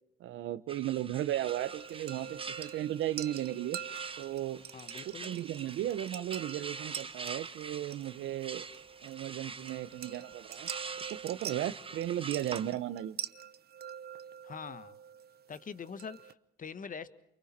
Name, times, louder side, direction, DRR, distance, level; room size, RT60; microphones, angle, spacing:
voice 1, 0.2-3.8 4.2-4.6 5.0-8.6 9.0-10.7 11.2-13.2, right 12 dB, 80° right, 14 dB, 1.1 m, -35 dB
sound 1, 0.7-12.7, right 4 dB, 25° right, 1.1 m, -45 dB
sound 2, 1.5-16.3, right 9 dB, 55° right, 0.9 m, -46 dB
voice 2, 4.7-5.3 14.4-15.0 15.5-17.1, left 6 dB, 40° left, 13 dB, 1.3 m, -44 dB
29.5 x 23.5 x 4.4 m, 0.80 s
cardioid pair, 90°, 20 cm